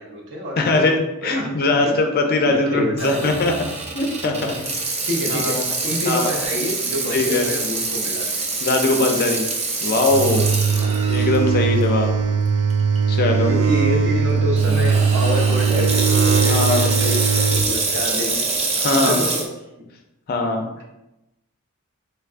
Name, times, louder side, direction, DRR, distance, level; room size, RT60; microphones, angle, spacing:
voice 1, 0.0-1.0 1.2-2.0 2.2-3.3 5.0-5.6 5.8-8.2 10.7-10.9 13.5-18.7 19.0-19.4 19.8-19.9, equal, 55° right, 0 dB, 0.7 m, -28 dB
voice 2, 0.6-3.5 3.9-4.7 5.3-5.6 6.1-6.3 7.1-7.4 8.6-9.4 9.8-10.5 11.1-12.1 13.1-13.5 16.4-16.9 18.8-19.2 20.3-20.8, left 2 dB, 40° left, 3 dB, 0.4 m, -21 dB
Water tap faucet / Sink (filling or washing), 3.0-11.4 11.9-12.0 12.7-13.0 14.6-19.5, right 3 dB, 30° right, 0.4 m, -25 dB
sound 1, 10.1-17.7, right 6 dB, 85° right, 0.4 m, -19 dB
3.3 x 3.3 x 2.4 m, 0.94 s
head